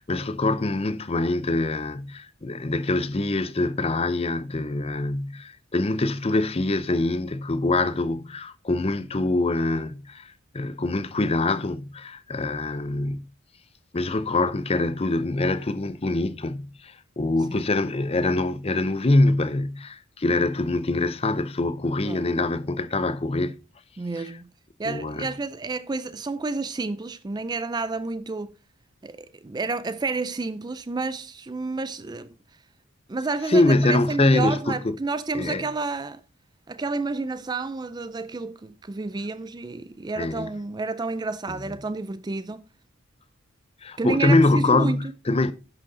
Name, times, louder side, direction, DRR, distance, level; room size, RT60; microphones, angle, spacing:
voice 1, 0.0-13.3 13.9-23.6 24.2-24.3 24.8-25.3 33.5-34.9 35.3-35.6 40.2-40.5 43.8-45.5, left 2 dB, 30° left, 0.6 m, -24 dB
voice 2, 24.0-24.5 24.8-28.6 29.0-32.3 33.1-36.2 36.7-42.6 44.0-45.1, right 3 dB, 20° right, 0.4 m, -30 dB
11.0 x 6.3 x 3.9 m
head